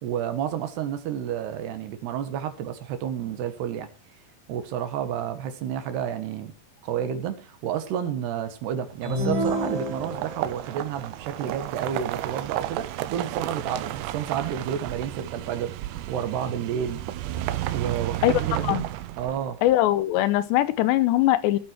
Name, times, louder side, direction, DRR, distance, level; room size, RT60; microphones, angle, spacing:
voice 1, 0.0-3.9 4.5-6.5 6.8-17.0 17.7-18.6 19.2-19.6, right 9 dB, 75° right, 9 dB, 3.5 m, -30 dB
sound 1, 8.9-19.7, right 14 dB, 90° right, 3.1 m, -33 dB
sound 2, 9.0-10.6, equal, 45° right, 5.1 m, -28 dB
voice 2, 19.6-21.6, left 14 dB, 85° left, 15 dB, 3.1 m, -21 dB
18.0 x 9.0 x 4.6 m, 0.35 s
omnidirectional pair, 4.9 m